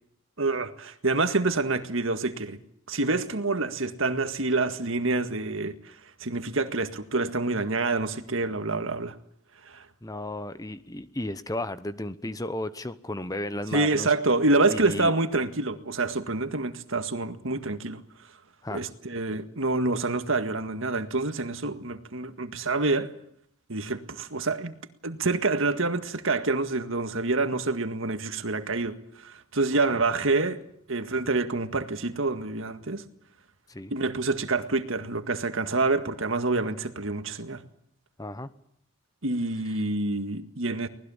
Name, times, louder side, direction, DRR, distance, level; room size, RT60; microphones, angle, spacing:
voice 1, 0.4-2.6 2.9-6.0 6.2-9.2 9.7-9.9 13.7-18.0 18.7-23.1 23.7-24.7 25.0-30.6 30.9-33.0 33.9-37.6 39.2-40.9, right 3 dB, 65° right, 1.8 m, -27 dB
voice 2, 10.0-14.1 14.7-15.1 18.6-18.8 29.9-30.0 33.7-33.9 38.2-38.5, left 1 dB, 15° left, 0.9 m, -34 dB
25.0 x 19.5 x 7.2 m
head